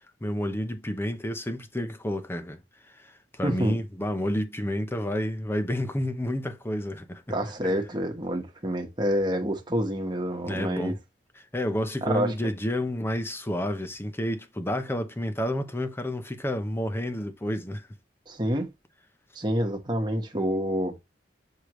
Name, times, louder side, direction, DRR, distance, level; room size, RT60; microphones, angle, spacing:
voice 1, 0.2-2.6 2.9-7.3 7.6-7.7 10.5-11.0 11.4-17.9, left 1 dB, 15° left, 0.7 m, -30 dB
voice 2, 3.4-3.8 7.3-10.9 12.0-12.3 18.3-18.7 19.3-21.0, equal, 25° right, 1.3 m, -28 dB
6.5 x 5.0 x 3.1 m
head